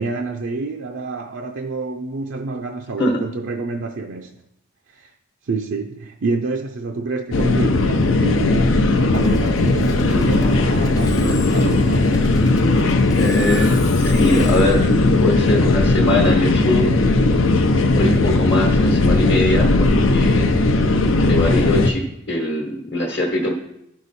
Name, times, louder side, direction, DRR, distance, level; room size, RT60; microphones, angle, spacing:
voice 1, 0.0-4.4 4.9-5.1 5.4-12.2, right 3 dB, 70° right, 0.5 m, -28 dB
sound 1, 7.3-21.9, left 2 dB, 85° left, 0.7 m, -17 dB
Musical instrument, 9.1-16.5, left 2 dB, 20° left, 0.5 m, -34 dB
voice 2, 13.2-14.8 15.2-17.0 18.0-20.6 21.2-23.5, left 1 dB, 55° left, 1.1 m, -22 dB
11.5 x 4.8 x 4.1 m
head